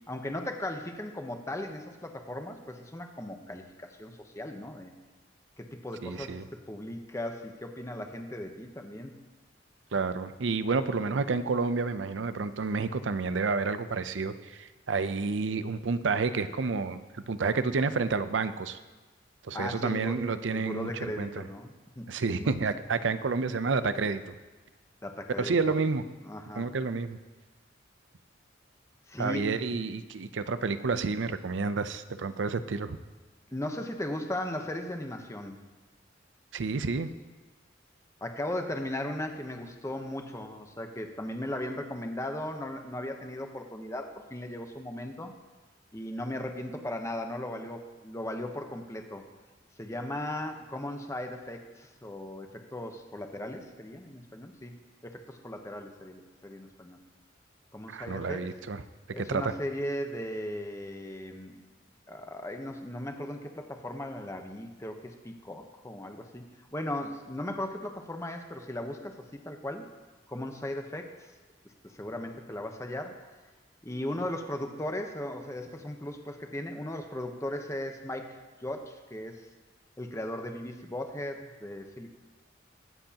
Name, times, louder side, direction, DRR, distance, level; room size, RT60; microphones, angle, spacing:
voice 1, 0.1-4.9 5.6-9.1 19.5-20.2 20.5-22.1 22.4-22.5 25.0-25.8 26.2-26.7 29.1-29.8 33.5-35.6 38.2-45.3 45.9-49.2 49.8-54.8 55.0-57.0 57.7-58.5 59.1-61.6 62.1-66.4 66.7-69.8 70.3-71.3 71.8-73.3 73.8-79.5 80.0-82.1, left 1 dB, 15° left, 4 dB, 0.9 m, -37 dB
voice 2, 6.0-6.4 9.9-18.8 19.5-20.9 21.2-21.3 22.1-24.3 25.4-26.0 26.6-27.2 29.2-33.0 36.5-37.1 57.9-58.8 59.2-59.5, right 4 dB, 90° right, 12 dB, 0.6 m, -30 dB
22.0 x 7.8 x 2.9 m, 1.2 s
head